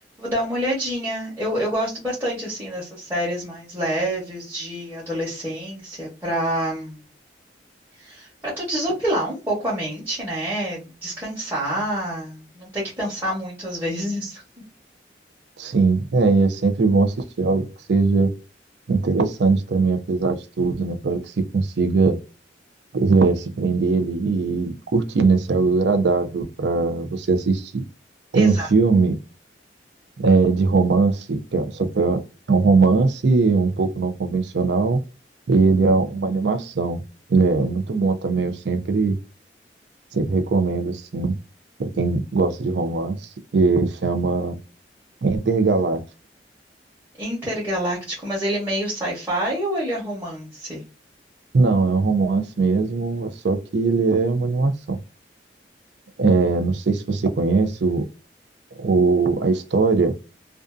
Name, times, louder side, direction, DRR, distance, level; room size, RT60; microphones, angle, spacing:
voice 1, 0.2-7.0 8.0-14.4 28.3-28.7 47.2-50.8, equal, 15° right, 0.9 m, -27 dB
voice 2, 15.6-18.3 18.9-22.2 22.9-27.8 28.3-29.2 30.2-32.2 32.5-35.0 35.5-37.0 37.3-39.2 40.1-41.4 41.8-43.2 43.5-44.6 45.2-46.0 51.5-55.0 56.2-58.1 58.8-60.2, right 4 dB, 75° right, 0.5 m, -20 dB
2.5 x 2.3 x 2.3 m
head